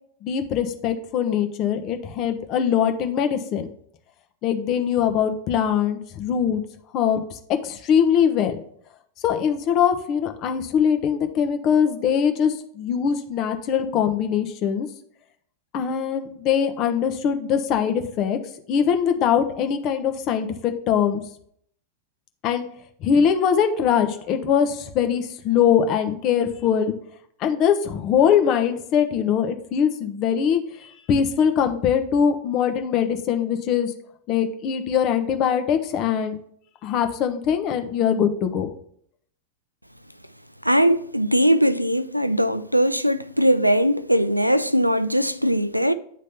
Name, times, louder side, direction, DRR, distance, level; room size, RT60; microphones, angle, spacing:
voice 1, 0.2-3.7 4.4-6.6 6.9-8.6 9.2-14.9 15.7-18.4 18.7-21.2 22.4-22.7 23.0-26.9 27.4-33.9 34.3-36.4 36.8-38.7, left 8 dB, 40° left, 0.8 m, -22 dB
voice 2, 40.6-45.9, equal, 90° right, 0.3 m, -20 dB
9.2 x 3.2 x 5.5 m
figure-of-eight pair, 90°, 0 cm